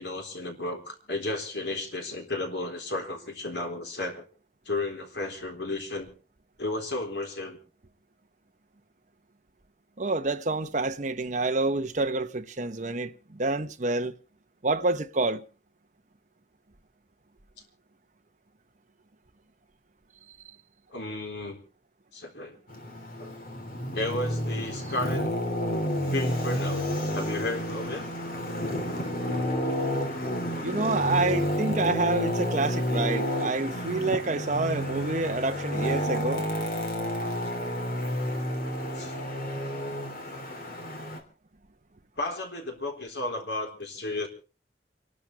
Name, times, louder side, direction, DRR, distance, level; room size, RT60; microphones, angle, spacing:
voice 1, 0.0-4.2 4.7-6.1 6.6-7.6 20.9-21.6 22.1-22.6 23.2-23.4 23.9-25.3 26.1-26.8 27.1-28.1 39.0-39.1 42.2-44.3, left 2 dB, 80° left, 3.9 m, -33 dB
voice 2, 10.0-14.1 14.6-15.4 30.6-36.4 39.0-39.1, right 3 dB, 45° right, 1.0 m, -28 dB
Traffic noise roadway noise, 22.7-41.2, equal, 55° left, 3.4 m, -30 dB
28.5 x 12.5 x 3.3 m
head